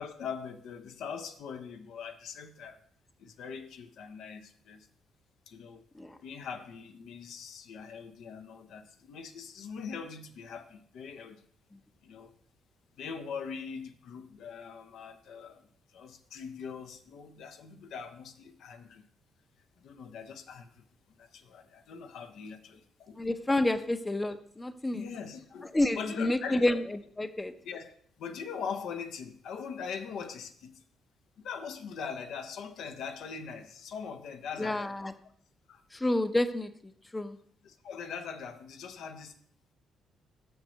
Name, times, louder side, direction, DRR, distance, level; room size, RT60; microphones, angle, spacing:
voice 1, 0.0-2.8 3.2-4.9 5.5-5.8 6.2-11.4 12.0-12.3 13.0-19.1 19.8-20.8 21.2-23.2 24.9-26.7 27.6-30.8 31.4-35.1 35.7-35.8 37.6-39.4, left 6 dB, 75° left, 0.7 m, -42 dB
voice 2, 23.2-25.0 25.7-26.8 27.2-27.5 34.6-35.1 35.9-36.7 37.1-37.4, left 1 dB, 15° left, 0.6 m, -29 dB
6.4 x 4.6 x 6.3 m
cardioid pair, 90°, 0 cm